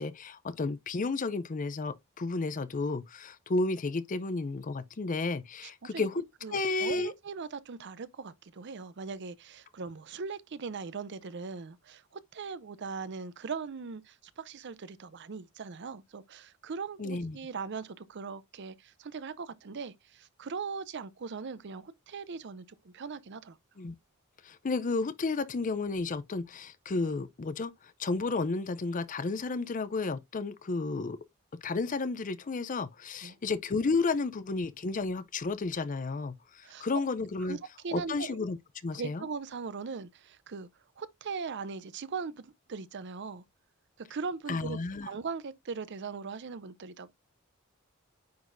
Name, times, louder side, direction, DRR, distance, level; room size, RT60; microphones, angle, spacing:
voice 1, 0.0-6.2 6.5-7.1 17.0-17.4 23.8-23.9 24.4-27.7 28.0-31.2 31.6-37.6 37.9-38.6 38.8-39.2 44.5-45.1, left 3 dB, 35° left, 0.5 m, -32 dB
voice 2, 5.6-6.1 6.4-23.6 33.2-33.4 36.6-36.9 37.4-38.4 38.9-40.7 41.0-43.4 44.0-47.1, right 5 dB, 55° right, 0.6 m, -40 dB
9.4 x 4.0 x 2.6 m
head